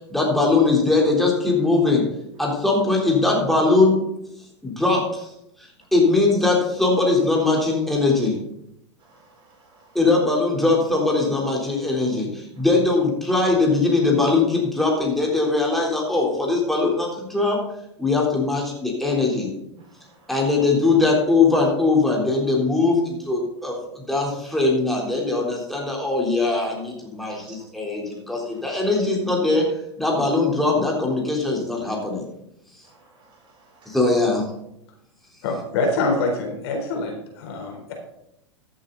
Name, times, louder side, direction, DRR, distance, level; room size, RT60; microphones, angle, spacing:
voice 1, 0.1-2.1 2.4-4.0 4.6-5.3 5.9-8.4 9.9-17.6 18.0-19.5 20.3-32.2 33.9-34.5, left 3 dB, ahead, -2 dB, 3.7 m, -21 dB
voice 2, 9.0-10.0 19.8-20.3 27.3-27.6 32.8-34.0, right 4 dB, 30° right, -2 dB, 5.2 m, -54 dB
voice 3, 35.4-37.9, left 2 dB, 60° left, 1 dB, 3.9 m, -25 dB
14.0 x 8.5 x 4.0 m, 0.80 s
hypercardioid pair, 105°, 15 cm